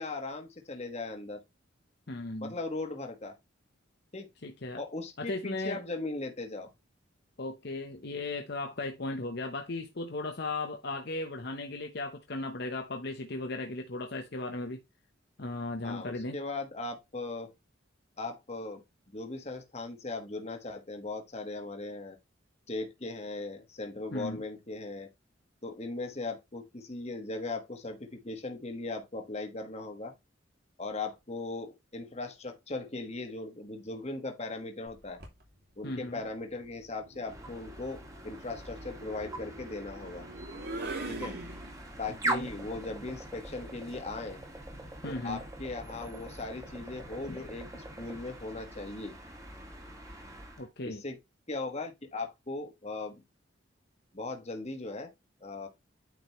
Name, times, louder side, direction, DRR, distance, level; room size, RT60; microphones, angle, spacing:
voice 1, 0.0-1.4 2.4-3.4 4.1-4.3 4.8-6.7 15.8-17.5 18.2-18.8 19.1-22.2 22.7-25.1 25.6-30.1 30.8-35.2 35.8-40.3 41.1-41.4 42.0-44.4 45.0-49.1 50.8-51.2 51.5-53.2 54.1-55.1 55.4-55.7, left 3 dB, 35° left, 1.5 m, -38 dB
voice 2, 2.1-2.5 4.4-4.8 5.2-5.8 7.4-14.8 15.4-16.4 24.1-24.4 35.8-36.2 42.1-42.5 45.0-45.4 47.3-47.4 50.6-51.0, left 2 dB, 55° left, 0.9 m, -36 dB
sound 1, 34.9-35.4 36.8-42.1, right 2 dB, 55° right, 2.6 m, -43 dB
sound 2, 37.2-50.7, right 1 dB, 15° right, 2.1 m, -42 dB
9.2 x 5.0 x 3.1 m
head